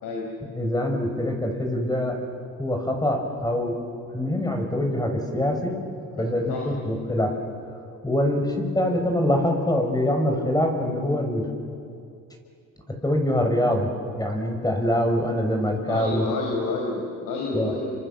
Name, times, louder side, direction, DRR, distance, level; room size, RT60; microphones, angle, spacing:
voice 1, 0.5-2.2 2.6-3.8 4.1-5.7 6.2-7.3 8.0-11.5 13.0-16.3 17.5-17.7, left 1 dB, 10° left, 3 dB, 6.3 m, -24 dB
voice 2, 6.2-6.7 8.3-8.4 15.9-17.9, left 3 dB, 75° left, 0 dB, 4.8 m, -29 dB
29.5 x 26.0 x 7.7 m, 2.5 s
supercardioid pair, 75°, 34 cm